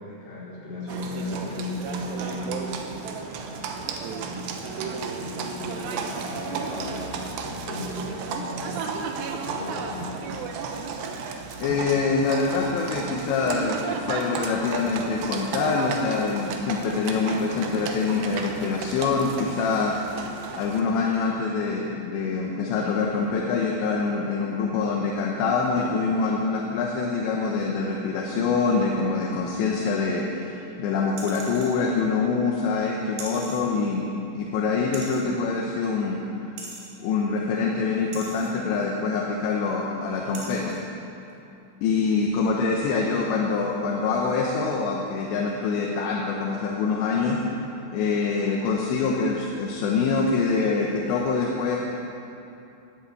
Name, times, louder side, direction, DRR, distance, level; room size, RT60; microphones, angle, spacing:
voice 1, 0.0-2.6 3.3-7.2 7.4-8.8 9.3-10.4, left 1 dB, 55° left, -7 dB, 5.8 m, -36 dB
Livestock farm animals working animals, 0.9-20.8, right 5 dB, 75° right, 3.0 m, -33 dB
voice 2, 11.6-36.6 37.0-40.8 41.8-47.4 47.9-51.8, left 4 dB, 75° left, -1 dB, 3.2 m, -25 dB
sound 1, 31.2-31.8 33.2-33.6 34.9-35.3 36.6-36.9 38.1-38.5 39.6-39.7 40.3-40.8 41.3-41.4, right 3 dB, 60° right, 4.1 m, -39 dB
13.0 x 11.5 x 8.4 m, 2.8 s
omnidirectional pair, 5.4 m